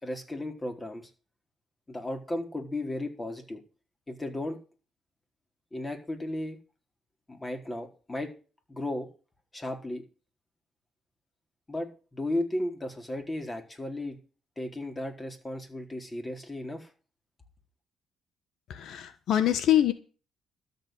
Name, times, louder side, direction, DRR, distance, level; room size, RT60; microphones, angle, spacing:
voice 1, 0.0-1.1 1.9-3.6 4.1-4.6 5.7-6.6 7.3-8.3 8.7-9.1 9.5-10.0 11.7-14.2 14.6-16.9, left 1 dB, 20° left, 5 dB, 4.3 m, -35 dB
voice 2, 18.7-19.9, left 11 dB, 75° left, 12 dB, 1.2 m, -24 dB
13.0 x 8.2 x 6.6 m, 0.35 s
cardioid pair, 90°, 0 cm